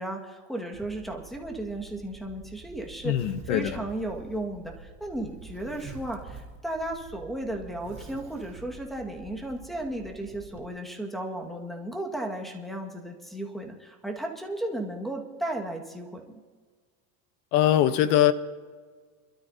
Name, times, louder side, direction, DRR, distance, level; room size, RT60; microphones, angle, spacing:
voice 1, 0.0-3.1 3.5-16.2, right 1 dB, ahead, 2 dB, 1.9 m, -35 dB
Zipper (clothing), 0.7-10.7, right 5 dB, 25° right, 4.0 m, -47 dB
voice 2, 3.0-3.8 17.5-18.3, left 12 dB, 65° left, 12 dB, 1.2 m, -22 dB
28.5 x 13.0 x 2.8 m, 1.5 s
supercardioid pair, 120°, 48 cm